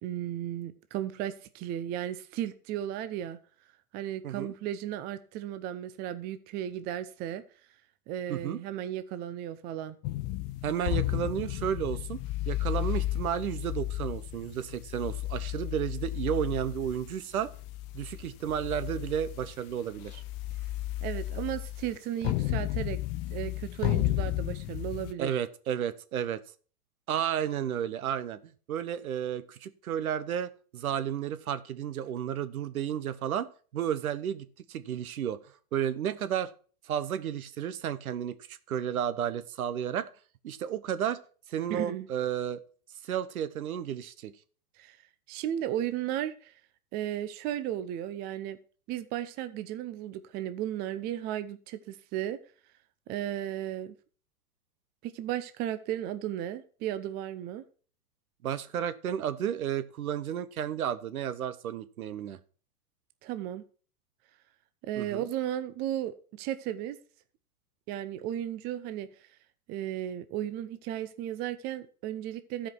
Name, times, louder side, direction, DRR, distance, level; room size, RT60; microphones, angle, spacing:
voice 1, 0.0-3.4 3.9-7.4 8.1-10.0 21.0-23.0 23.3-25.4 41.7-42.1 44.8-45.0 45.3-46.5 46.9-48.6 48.9-52.4 53.1-53.9 55.0-57.6 63.2-63.6 64.8-67.0 67.9-69.1 69.7-72.7, right 11 dB, 20° right, 12 dB, 0.5 m, -35 dB
sound 1, 10.0-25.1, left 15 dB, 30° left, 0.5 m, -33 dB
voice 2, 10.6-12.2 12.5-17.5 17.9-20.2 25.2-26.4 27.1-28.4 28.7-33.5 33.7-35.4 35.7-36.5 36.9-40.1 40.4-41.2 41.5-42.6 43.0-44.3 58.4-62.4 65.0-65.3, right 9 dB, 70° right, 13 dB, 1.1 m, -32 dB
13.5 x 5.1 x 5.9 m, 0.41 s
hypercardioid pair, 115°, 44 cm